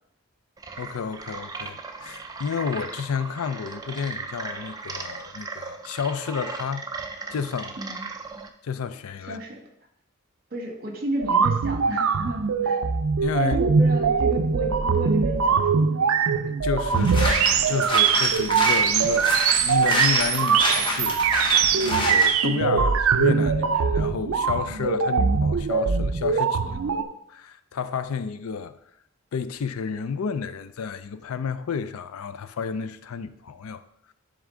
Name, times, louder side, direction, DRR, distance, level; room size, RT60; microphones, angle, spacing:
sound 1, 0.6-8.5, right 4 dB, 15° right, 0.4 m, -37 dB
voice 1, 0.8-6.9 7.3-7.8 8.6-9.4 13.2-13.6 16.4-21.5 21.8-28.8 29.3-33.8, left 6 dB, 80° left, 0.4 m, -31 dB
voice 2, 9.3-9.6 10.5-12.8 13.4-16.1 26.7-27.1, right 1 dB, 45° right, 1.3 m, -33 dB
sound 2, 11.2-27.0, right 6 dB, 75° right, 0.5 m, -22 dB
sound 3, 16.8-22.3, left 1 dB, 20° left, 1.0 m, -28 dB
10.5 x 3.6 x 3.7 m
head